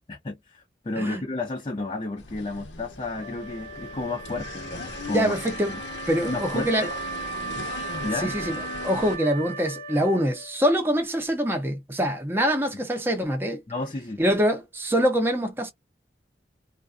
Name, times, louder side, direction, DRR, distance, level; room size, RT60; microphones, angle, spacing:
voice 1, 0.1-5.3 5.7-5.8 6.2-6.9 8.0-8.3 13.7-14.2, left 2 dB, 30° left, 0.5 m, -32 dB
sound 1, 2.2-9.2, left 4 dB, 85° left, 0.7 m, -38 dB
Wind instrument woodwind instrument, 3.2-10.7, right 5 dB, 60° right, 0.5 m, -37 dB
voice 2, 5.1-5.7 6.1-6.9 8.2-13.6 14.2-15.7, equal, 15° right, 0.7 m, -24 dB
2.4 x 2.3 x 2.4 m
head